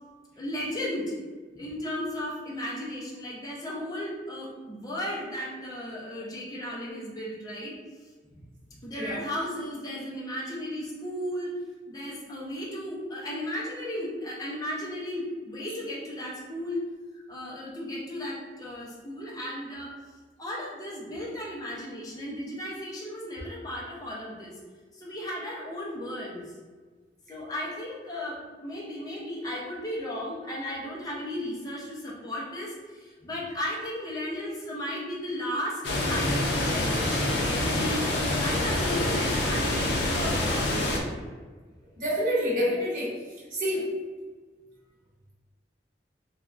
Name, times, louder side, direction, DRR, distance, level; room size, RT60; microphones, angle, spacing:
voice 1, 0.4-1.1 1.6-7.7 8.8-16.8 17.1-19.9 20.4-24.5 24.9-26.5 27.3-38.0 38.4-41.1, left 1 dB, 20° left, -5 dB, 0.5 m, -35 dB
sound 1, 35.8-41.0, left 1 dB, 75° left, 0.5 m, -26 dB
voice 2, 42.0-43.2 43.5-43.9, equal, 50° right, -7 dB, 1.0 m, -27 dB
3.2 x 2.3 x 2.4 m, 1.4 s
head